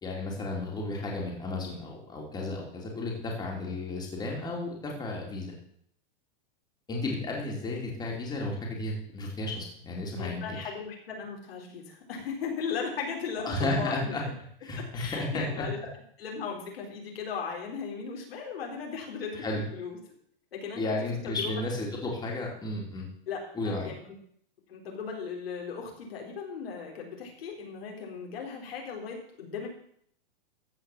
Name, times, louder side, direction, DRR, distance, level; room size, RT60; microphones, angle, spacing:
voice 1, 0.0-5.5 6.9-10.6 13.4-14.2 14.6-15.6 19.4-19.6 20.8-23.1 23.5-23.9, left 2 dB, 15° left, -1 dB, 2.9 m, -33 dB
voice 2, 10.2-14.3 14.8-15.8 16.2-20.0 20.5-21.0 21.2-21.5 23.3-24.0 24.7-29.7, left 6 dB, 85° left, 0 dB, 4.0 m, -37 dB
14.5 x 5.1 x 7.3 m, 0.65 s
supercardioid pair, 150°, 29 cm